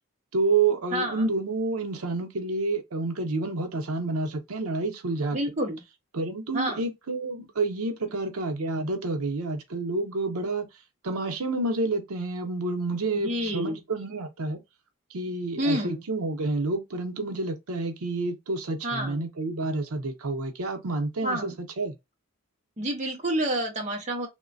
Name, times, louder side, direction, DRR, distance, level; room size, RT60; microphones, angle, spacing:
voice 1, 0.3-5.4 6.1-10.7 11.0-14.6 15.1-21.9, right 3 dB, 85° right, 0.7 m, -29 dB
voice 2, 0.9-1.3 5.3-5.8 6.5-6.8 13.2-13.8 15.6-16.0 18.8-19.2 21.2-21.5 22.8-24.3, right 1 dB, 30° right, 0.6 m, -28 dB
3.1 x 2.1 x 2.5 m
head